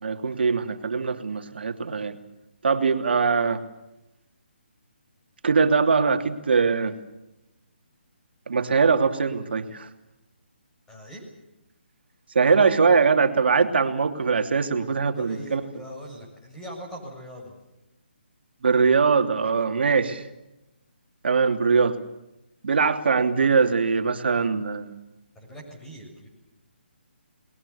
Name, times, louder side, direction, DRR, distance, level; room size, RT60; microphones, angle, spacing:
voice 1, 0.0-2.2 2.6-3.6 5.4-7.0 8.5-9.9 12.3-15.6 18.6-20.3 21.2-22.0 22.6-25.0, right 5 dB, 65° right, 7 dB, 2.8 m, -22 dB
voice 2, 10.9-11.3 15.1-17.5 25.4-26.3, equal, 10° left, 0 dB, 6.9 m, -41 dB
28.5 x 21.5 x 7.1 m, 0.93 s
hypercardioid pair, 155°, 6 cm